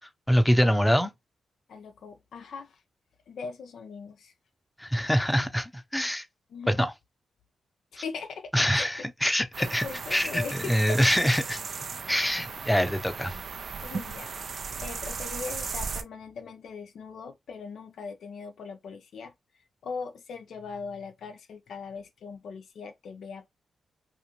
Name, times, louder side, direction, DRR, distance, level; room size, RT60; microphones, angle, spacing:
voice 1, 0.3-1.1 4.8-6.2 6.7-6.9 8.5-9.8 10.1-11.6 12.1-13.3, equal, 5° left, 0.7 m, -24 dB
voice 2, 1.7-2.8 3.3-4.3 6.5-6.8 7.9-8.9 9.2-11.0 12.1-12.2 13.8-19.3 19.8-23.5, left 5 dB, 75° left, 0.4 m, -40 dB
sound 1, 9.5-16.0, right 5 dB, 60° right, 0.4 m, -36 dB
2.5 x 2.4 x 2.9 m
supercardioid pair, 50°, 0 cm